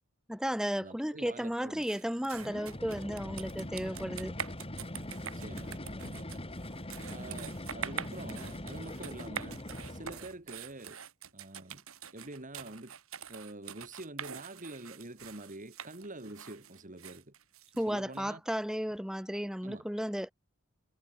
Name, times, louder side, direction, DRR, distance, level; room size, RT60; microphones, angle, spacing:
voice 1, 0.3-4.3 17.8-20.3, equal, 5° right, 4.7 m, -34 dB
voice 2, 0.8-1.9 5.2-6.2 7.1-11.0 11.3-11.8 12.1-12.9 13.3-17.3 17.9-18.4 19.4-19.8, right 2 dB, 40° right, 3.2 m, -46 dB
sound 1, 1.8-18.2, right 7 dB, 75° right, 6.2 m, -45 dB
sound 2, 2.3-10.4, left 1 dB, 25° left, 5.4 m, -42 dB
head